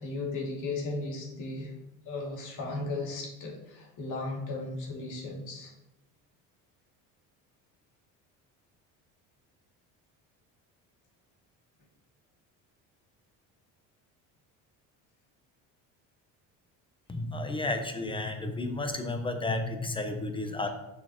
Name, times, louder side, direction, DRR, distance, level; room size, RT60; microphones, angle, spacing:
voice 1, 0.0-1.7 2.0-5.7, left 2 dB, 60° left, -2 dB, 2.5 m, -36 dB
voice 2, 17.1-20.7, left 2 dB, 15° left, 6 dB, 0.9 m, -32 dB
6.7 x 6.3 x 3.0 m, 0.95 s
cardioid pair, 105°, 35 cm